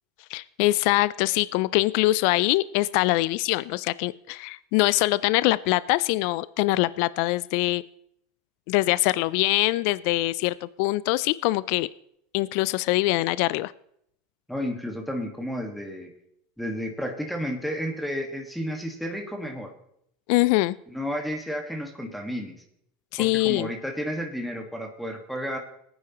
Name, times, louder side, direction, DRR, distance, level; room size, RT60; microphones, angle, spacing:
voice 1, 0.3-7.8 8.7-11.9 12.3-13.7 20.3-20.8 23.1-23.7, left 19 dB, 65° left, 19 dB, 0.3 m, -23 dB
voice 2, 14.5-16.1 16.6-19.7 20.9-22.6 23.2-25.6, equal, ahead, 3 dB, 1.6 m, -32 dB
19.5 x 9.4 x 3.0 m, 0.73 s
hypercardioid pair, 95°, 0 cm